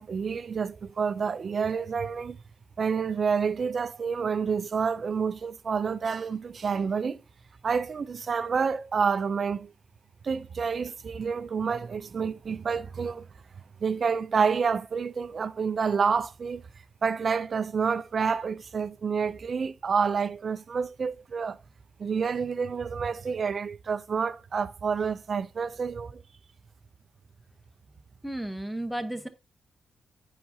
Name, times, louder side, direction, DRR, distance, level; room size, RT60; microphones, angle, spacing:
voice 1, 0.0-2.4 2.8-7.2 7.6-9.7 10.2-13.3 13.8-16.6 17.0-21.6 22.0-26.2, right 6 dB, 50° right, 0.4 m, -28 dB
voice 2, 28.2-29.3, right 1 dB, ahead, 0.9 m, -33 dB
7.9 x 5.7 x 2.7 m
cardioid pair, 95°, 0 cm